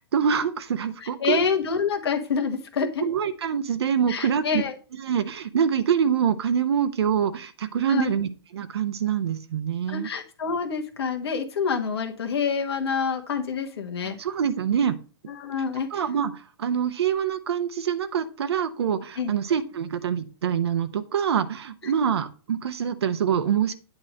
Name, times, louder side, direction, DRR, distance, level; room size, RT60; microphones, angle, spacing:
voice 1, 0.0-1.4 3.0-4.6 5.0-10.1 14.2-15.0 15.9-23.7, right 8 dB, 75° right, 9 dB, 0.8 m, -25 dB
voice 2, 1.0-3.0 4.1-4.7 7.9-8.1 9.9-14.2 15.3-16.0 19.2-19.3 21.8-21.9, left 6 dB, 70° left, 4 dB, 1.3 m, -27 dB
8.9 x 3.2 x 6.3 m, 0.36 s
hypercardioid pair, 135°, 14 cm